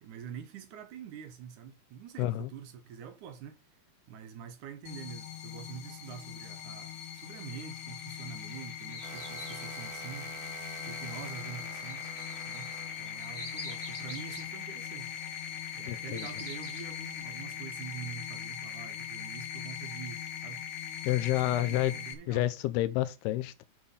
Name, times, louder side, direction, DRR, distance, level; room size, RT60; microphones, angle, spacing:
voice 1, 0.0-3.6 4.1-10.3 10.8-12.1 12.5-12.7 13.0-15.1 15.7-20.7 21.3-22.5, right 8 dB, 65° right, 2.0 m, -45 dB
voice 2, 2.2-2.5 15.9-16.3 21.0-22.0 22.3-23.6, left 15 dB, 80° left, 2.6 m, -29 dB
sound 1, 4.9-22.1, left 9 dB, 65° left, 2.1 m, -40 dB
sound 2, 8.4-9.8 11.8-14.5 15.6-16.8, left 1 dB, 5° left, 1.6 m, -46 dB
sound 3, 9.0-17.6, right 13 dB, 85° right, 2.7 m, -51 dB
8.9 x 5.2 x 5.6 m
omnidirectional pair, 4.6 m